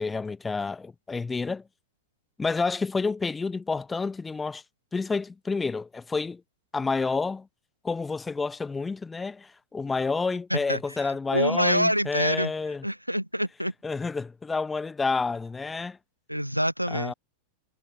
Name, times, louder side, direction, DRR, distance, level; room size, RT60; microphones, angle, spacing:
voice 1, 0.0-1.6 2.4-4.6 4.9-6.4 6.7-7.5 7.8-12.8 13.8-16.0 16.9-17.1, left 4 dB, 10° left, 0.3 m, -29 dB
voice 2, 10.5-12.5 12.8-13.7 16.3-17.1, equal, 90° right, 0.3 m, -26 dB
figure-of-eight pair, 90°, 0 cm